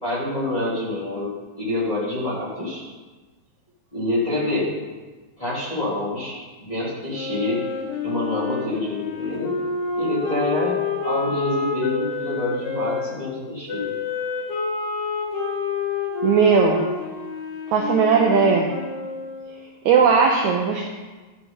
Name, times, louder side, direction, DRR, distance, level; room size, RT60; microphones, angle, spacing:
voice 1, 0.0-2.8 3.9-4.7 5.4-7.6 8.0-9.5 9.9-13.9, left 2 dB, 10° left, -9 dB, 3.1 m, -26 dB
Wind instrument woodwind instrument, 7.1-13.0 13.7-19.5, left 4 dB, 90° left, 4.0 m, -28 dB
voice 2, 16.2-16.8 17.7-18.7 19.9-20.9, right 5 dB, 80° right, 0 dB, 1.6 m, -17 dB
12.0 x 8.3 x 4.6 m, 1.3 s
omnidirectional pair, 4.5 m